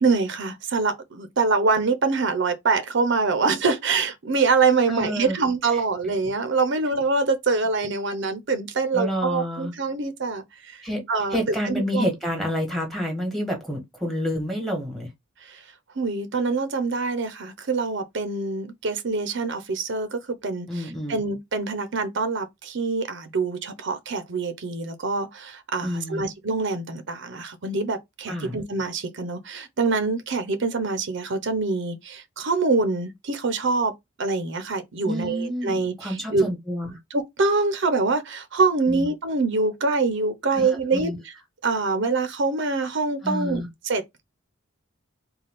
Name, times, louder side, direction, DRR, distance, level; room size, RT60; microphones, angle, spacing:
voice 1, 0.0-10.8 11.1-11.4 11.6-12.1 15.4-15.6 16.0-33.9 34.2-36.5 37.1-41.3 41.6-44.2, right 4 dB, 60° right, 0.7 m, -25 dB
voice 2, 4.9-5.4 5.7-5.8 8.9-9.7 10.8-11.0 11.3-15.1 20.7-21.2 25.8-26.2 28.3-28.6 35.0-37.0 38.9-39.1 40.5-41.2 43.2-43.7, equal, ahead, 1.3 m, -28 dB
4.0 x 2.3 x 3.5 m
head